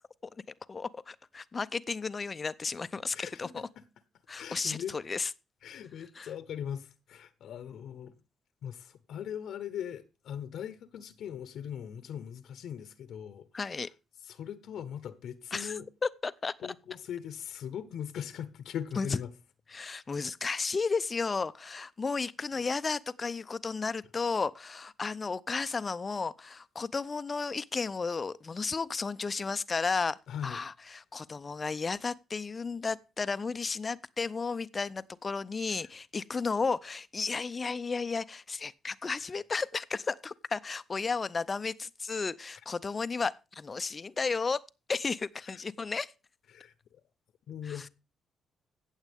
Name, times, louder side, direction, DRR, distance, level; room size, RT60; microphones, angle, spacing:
voice 1, 0.7-3.7 4.3-5.3 6.2-6.3 13.5-13.9 15.5-15.7 16.2-16.5 19.0-19.1 19.7-44.6 44.9-46.1 47.6-47.9, left 4 dB, 30° left, 0.5 m, -33 dB
voice 2, 3.1-3.8 4.3-5.1 5.6-8.2 8.6-13.9 14.2-15.9 16.6-19.3 30.3-30.6 35.7-35.9 39.3-39.4 45.4-45.6 46.5-47.0 47.5-47.9, left 9 dB, 75° left, 0.9 m, -40 dB
16.5 x 7.3 x 3.6 m
cardioid pair, 90°, 0 cm